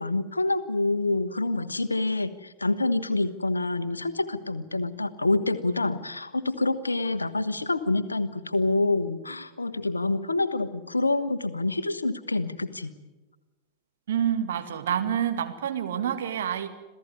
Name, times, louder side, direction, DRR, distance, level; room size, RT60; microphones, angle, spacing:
voice 1, 0.0-12.9, left 2 dB, 80° left, 11 dB, 1.3 m, -27 dB
voice 2, 14.1-16.7, right 9 dB, 60° right, 7 dB, 2.2 m, -27 dB
27.0 x 16.0 x 9.7 m, 1.1 s
figure-of-eight pair, 90°, 0 cm